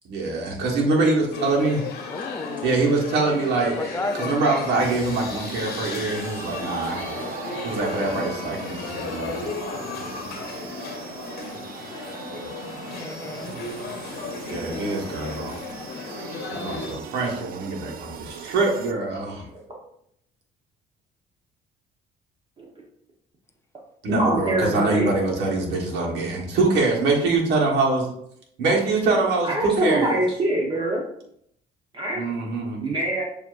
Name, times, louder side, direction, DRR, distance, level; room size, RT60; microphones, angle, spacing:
voice 1, 0.0-1.8 2.6-3.8 4.2-7.1 7.6-9.5 14.5-15.6 16.6-19.5 24.0-28.1 28.6-30.1 32.1-32.8, right 3 dB, 80° right, -1 dB, 1.4 m, -24 dB
sound 1, 1.3-16.9, left 4 dB, 70° left, 0.9 m, -35 dB
voice 2, 2.1-2.8 3.8-5.1 13.0-13.6 29.5-29.6, left 2 dB, 15° left, 5 dB, 0.5 m, -33 dB
sound 2, 4.8-18.9, right 8 dB, 60° right, 0.4 m, -39 dB
voice 3, 24.1-25.1 29.4-31.0 31.9-32.2 32.8-33.2, right 1 dB, 30° right, -2 dB, 1.0 m, -24 dB
7.0 x 2.9 x 2.5 m, 0.70 s
cardioid pair, 110°, 17 cm